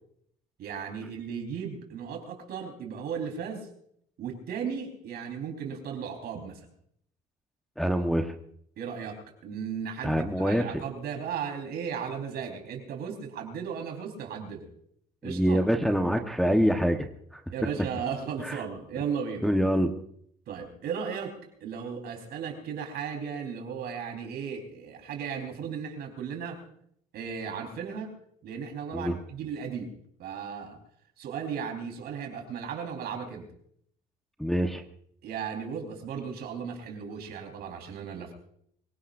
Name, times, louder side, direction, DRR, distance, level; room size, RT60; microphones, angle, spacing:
voice 1, 0.6-3.7 4.2-6.7 8.8-14.7 15.2-15.6 17.5-19.5 20.5-26.6 27.1-28.1 28.4-29.9 30.2-30.8 31.2-33.5 35.2-38.3, right 7 dB, 70° right, 3 dB, 4.3 m, -36 dB
voice 2, 7.8-8.3 10.0-10.8 15.2-17.1 18.4-18.6 19.4-19.9 28.9-29.2 34.4-34.8, equal, ahead, 3 dB, 1.2 m, -25 dB
24.5 x 17.0 x 2.6 m, 0.68 s
cardioid pair, 110°, 17 cm